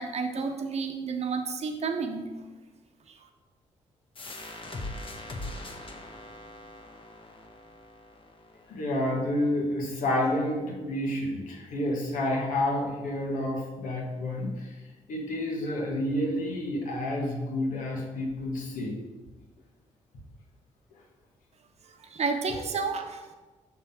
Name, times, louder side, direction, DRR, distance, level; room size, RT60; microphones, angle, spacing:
voice 1, 0.0-2.2 22.1-23.4, right 4 dB, 55° right, 4 dB, 0.9 m, -31 dB
sound 1, 4.2-9.6, left 2 dB, 40° left, 1.0 m, -42 dB
voice 2, 8.7-14.7 15.1-19.0, left 1 dB, 80° left, -1 dB, 1.5 m, -29 dB
5.9 x 3.6 x 5.8 m, 1.2 s
cardioid pair, 65°, 13 cm